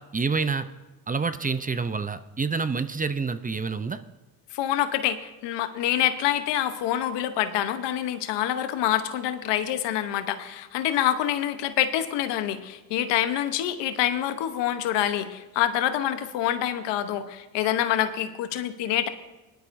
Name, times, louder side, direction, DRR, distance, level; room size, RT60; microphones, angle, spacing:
voice 1, 0.1-0.7 1.1-4.0, right 4 dB, 20° right, 12 dB, 0.6 m, -27 dB
voice 2, 4.5-19.1, left 11 dB, 80° left, 10 dB, 1.0 m, -26 dB
19.0 x 11.5 x 2.7 m, 1.1 s
supercardioid pair, 70°, 42 cm